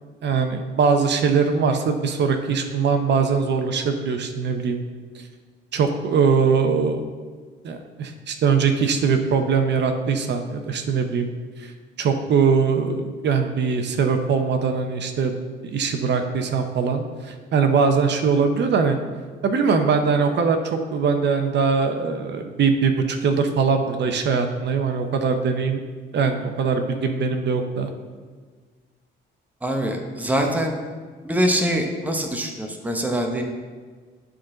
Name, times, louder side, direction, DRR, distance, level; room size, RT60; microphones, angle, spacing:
voice 1, 0.2-4.8 5.7-7.0 7.6-11.3 11.6-11.7 12.0-15.3 15.6-19.0 19.4-25.8 26.1-27.9, right 5 dB, 60° right, 6 dB, 0.7 m, -21 dB
voice 2, 29.6-30.7 31.2-33.4, equal, 10° right, 2 dB, 0.9 m, -24 dB
11.5 x 3.9 x 3.8 m, 1.5 s
cardioid pair, 90°, 20 cm